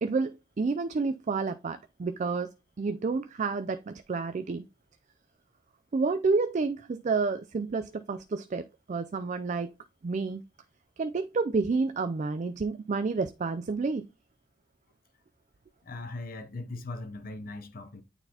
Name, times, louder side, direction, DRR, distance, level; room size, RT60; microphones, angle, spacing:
voice 1, 0.0-2.5 2.8-4.6 5.9-9.7 10.0-10.4 11.0-14.0, right 4 dB, 35° right, 0.3 m, -29 dB
voice 2, 15.8-18.0, left 2 dB, 45° left, 0.6 m, -39 dB
9.0 x 4.0 x 2.8 m
head